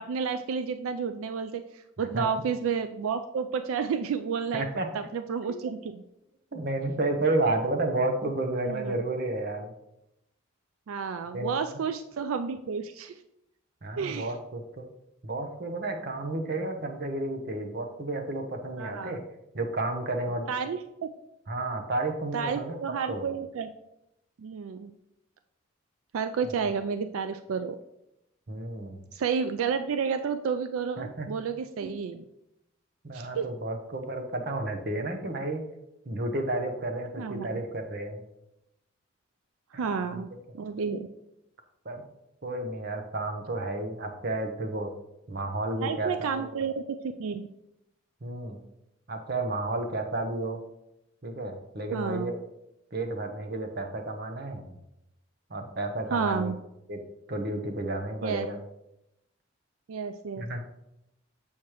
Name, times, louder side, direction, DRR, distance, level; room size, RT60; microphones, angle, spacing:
voice 1, 0.0-6.0 8.7-9.0 10.9-13.2 14.0-14.3 18.8-19.2 20.5-21.1 22.3-23.7 24.4-24.9 26.1-27.8 29.1-32.2 33.1-33.5 37.2-37.5 39.7-40.3 40.5-41.1 45.8-47.5 51.9-52.3 56.1-56.5 58.2-58.5 59.9-60.5, right 6 dB, 85° right, 10 dB, 0.4 m, -31 dB
voice 2, 4.5-4.9 5.4-5.6 6.5-9.7 11.3-11.8 13.8-14.9 15.2-19.2 19.5-20.5 21.5-22.8 23.1-23.3 28.5-29.0 31.0-31.3 31.8-31.9 33.0-35.6 36.1-38.2 39.7-40.2 40.7-40.8 41.8-42.0 42.4-44.9 45.3-46.5 48.2-48.6 49.1-50.6 51.2-52.3 52.9-54.8 55.5-56.5 56.9-57.0 57.3-58.6 60.4-60.6, right 2 dB, 50° right, 5 dB, 0.8 m, -31 dB
7.0 x 6.5 x 3.0 m, 0.86 s
head